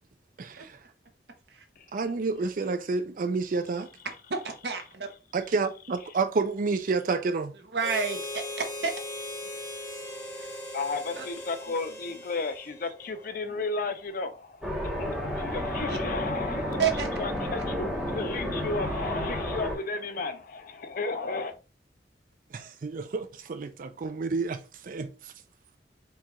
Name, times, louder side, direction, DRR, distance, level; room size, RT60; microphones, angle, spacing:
voice 1, 0.4-0.8 1.9-3.9 5.3-7.5 22.5-25.3, right 4 dB, 50° right, 0.4 m, -29 dB
voice 2, 4.3-5.1 7.7-8.2 8.6-8.9 10.4-10.5 11.1-11.3 13.5-13.6 15.9-16.0 16.8-17.1, right 6 dB, 70° right, 1.0 m, -30 dB
Harmonica, 7.8-13.3, left 1 dB, 20° left, 1.4 m, -39 dB
voice 3, 10.7-16.8 17.2-21.5, left 3 dB, 50° left, 0.6 m, -33 dB
sound 1, 14.6-19.8, equal, 5° right, 1.0 m, -31 dB
4.6 x 2.4 x 4.1 m
head